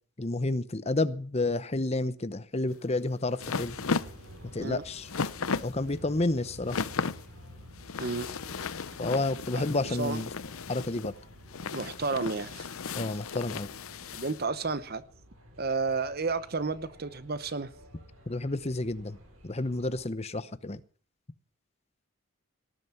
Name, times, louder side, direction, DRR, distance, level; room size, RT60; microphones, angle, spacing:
voice 1, 0.2-3.8 4.5-5.1 5.6-6.8 9.0-10.3 10.7-11.1 12.9-13.7 18.3-19.2 19.4-20.8, left 2 dB, 30° left, 0.8 m, -30 dB
sound 1, 2.7-14.4, left 5 dB, 75° left, 0.7 m, -36 dB
sound 2, 3.4-20.0, equal, 75° right, 6.6 m, -52 dB
voice 2, 9.9-10.2 11.7-12.7 14.1-15.0 15.6-17.7, right 4 dB, 45° right, 0.8 m, -31 dB
18.5 x 11.0 x 5.8 m
head